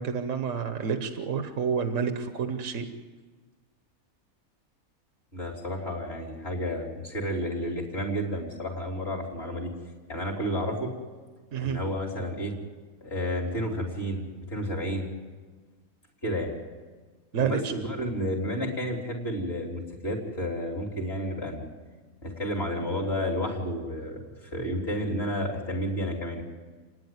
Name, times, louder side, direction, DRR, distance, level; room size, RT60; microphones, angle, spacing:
voice 1, 0.0-2.9 11.5-11.8 17.3-17.7, right 6 dB, 60° right, 7 dB, 1.5 m, -29 dB
voice 2, 5.3-9.7 10.1-10.9 11.6-12.6 13.0-15.1 16.2-16.5 17.4-21.7 22.2-24.2 24.5-26.4, equal, 45° left, 0 dB, 3.9 m, -31 dB
30.0 x 10.5 x 9.6 m, 1.4 s
omnidirectional pair, 1.5 m